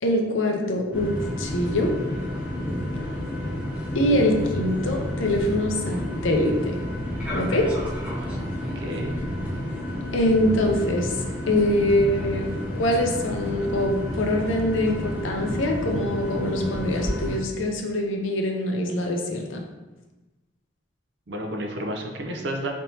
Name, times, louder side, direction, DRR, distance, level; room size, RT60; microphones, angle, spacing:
voice 1, 0.0-1.9 3.9-6.8 7.3-7.7 10.1-11.2 11.5-12.5 12.7-19.6, left 1 dB, 80° left, 2 dB, 0.6 m, -24 dB
sound 1, 0.9-17.4, equal, 5° right, 0.6 m, -30 dB
voice 2, 8.8-9.2 21.3-22.7, right 1 dB, 60° right, 3 dB, 0.6 m, -31 dB
4.1 x 3.4 x 2.8 m, 1.1 s
head